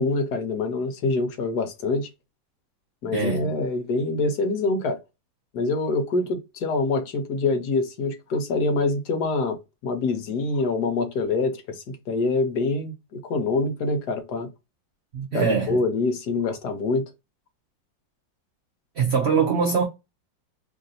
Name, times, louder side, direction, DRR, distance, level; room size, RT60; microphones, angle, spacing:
voice 1, 0.0-2.1 3.0-5.0 5.5-9.6 9.8-14.5 15.3-17.1, left 3 dB, 65° left, 1.3 m, -25 dB
voice 2, 3.1-3.5 15.1-15.8 19.0-19.8, right 6 dB, 55° right, 0.7 m, -23 dB
3.2 x 2.6 x 4.0 m
omnidirectional pair, 2.0 m